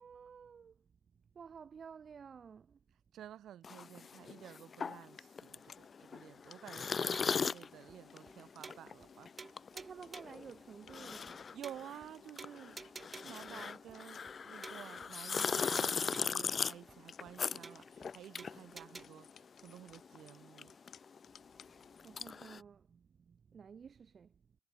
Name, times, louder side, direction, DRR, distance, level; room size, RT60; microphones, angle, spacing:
voice 1, 0.0-2.8 9.7-11.5 13.2-13.7 21.9-24.6, right 6 dB, 45° right, 1.0 m, -53 dB
voice 2, 3.1-9.5 11.5-12.8 13.2-20.7, right 11 dB, 70° right, 3.7 m, -52 dB
sound 1, 3.6-19.4 19.7-22.6, left 6 dB, 40° left, 0.8 m, -39 dB
sound 2, 5.6-22.3, left 8 dB, 60° left, 5.0 m, -65 dB
sound 3, 7.1-7.5 7.9-8.0 8.3-8.4 8.6-9.1 9.4-10.4 10.9-11.0 11.3-11.4 11.6-12.1 12.4-13.5 13.9-14.0 14.3-14.4 14.6-15.1 15.4-16.5 16.9-17.0 17.3-17.4 17.6-18.1 18.4-19.0, right 4 dB, 30° right, 0.5 m, -51 dB
cardioid pair, 90°, 0 cm